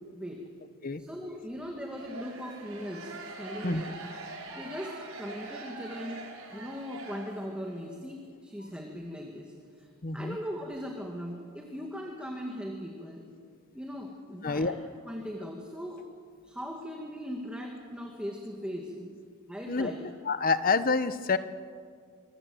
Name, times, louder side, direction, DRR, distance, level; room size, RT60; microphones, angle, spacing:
voice 1, 0.1-0.5 1.0-3.9 4.6-6.2 6.5-13.3 13.7-14.7 15.1-16.0 16.4-19.2 19.5-20.0, equal, 5° right, 0 dB, 2.1 m, -39 dB
sound 1, 1.9-7.8, right 3 dB, 75° right, 5.5 m, -43 dB
voice 2, 10.0-10.4 14.4-14.7 19.7-19.9 20.2-21.4, left 4 dB, 40° left, 13 dB, 0.9 m, -27 dB
26.5 x 22.0 x 7.8 m, 2.1 s
head